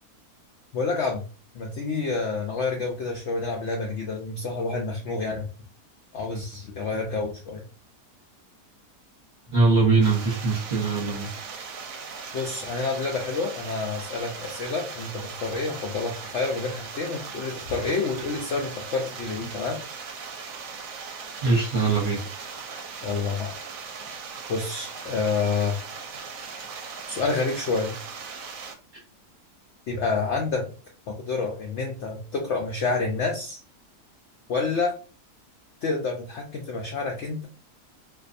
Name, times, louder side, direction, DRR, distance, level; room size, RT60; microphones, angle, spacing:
voice 1, 0.7-1.2 1.5-5.5 6.1-7.6 12.3-19.8 23.0-23.5 24.5-25.8 27.1-28.0 29.9-30.7 31.1-33.6 34.5-34.9 35.8-37.5, left 4 dB, 70° left, 0.6 m, -28 dB
voice 2, 9.5-11.3 21.4-22.2, right 3 dB, 40° right, 0.9 m, -22 dB
sound 1, 10.0-28.7, right 5 dB, 70° right, 0.9 m, -39 dB
2.5 x 2.2 x 2.5 m
omnidirectional pair, 1.7 m